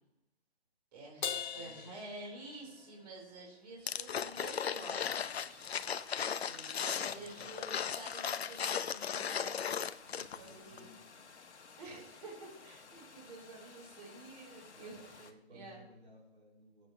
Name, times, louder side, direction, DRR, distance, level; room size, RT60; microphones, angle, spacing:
voice 1, 0.9-5.7 6.4-9.8 10.3-10.9 11.8-15.8, right 2 dB, 35° right, -2 dB, 4.7 m, -50 dB
Crash cymbal, 1.2-2.9, left 8 dB, 40° left, 1.1 m, -40 dB
voice 2, 1.5-2.1 2.4-3.1 3.4-4.0 7.1-7.9 10.0-11.3 14.7-16.9, right 1 dB, 70° right, -2 dB, 3.8 m, -60 dB
sound 1, 3.9-10.5 10.8-10.9, left 7 dB, 65° left, 0.8 m, -36 dB
sound 2, 4.7-15.3, left 5 dB, 85° left, 1.5 m, -56 dB
19.5 x 8.5 x 3.3 m, 0.86 s
hypercardioid pair, 165°, 33 cm